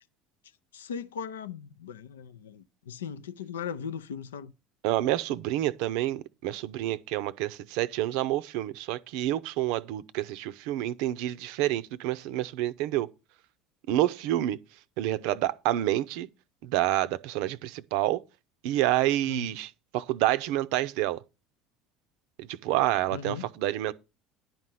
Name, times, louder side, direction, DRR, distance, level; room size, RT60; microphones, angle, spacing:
voice 1, 0.7-4.5 19.3-19.5 23.1-23.5, left 7 dB, 80° left, 0.5 m, -38 dB
voice 2, 4.8-13.1 13.9-14.6 15.0-16.3 16.6-18.2 18.6-21.2 22.4-23.9, right 14 dB, 65° right, 0.5 m, -28 dB
10.5 x 4.3 x 7.6 m
hypercardioid pair, 70°, 0 cm